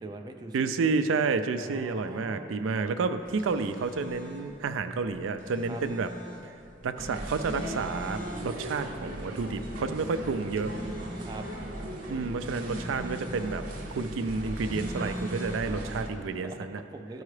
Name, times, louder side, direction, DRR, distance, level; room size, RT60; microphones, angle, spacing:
voice 1, 0.0-0.8 1.6-2.5 5.7-5.8 11.2-11.5 16.4-17.2, right 2 dB, 20° right, 5 dB, 0.4 m, -42 dB
voice 2, 0.5-6.1 6.4-6.5 6.8-10.7 12.1-13.6 13.9-16.8, right 4 dB, 90° right, 9 dB, 0.4 m, -30 dB
sound 1, 3.2-16.2, equal, 40° left, 1.0 m, -44 dB
sound 2, 7.0-16.1, right 1 dB, 45° right, 0.8 m, -38 dB
13.0 x 4.7 x 3.2 m, 2.7 s
head